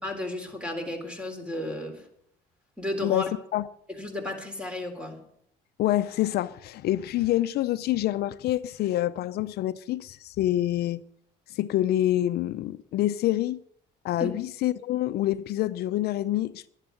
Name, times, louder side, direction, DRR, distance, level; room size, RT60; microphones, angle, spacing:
voice 1, 0.0-2.1 2.8-3.3 4.0-5.2 14.2-14.3, left 1 dB, 5° right, 3.6 m, -33 dB
voice 2, 3.0-3.7 5.8-11.0 11.5-13.6 14.0-16.7, left 14 dB, 70° left, 0.6 m, -27 dB
11.5 x 11.0 x 7.7 m
cardioid pair, 110°, 17 cm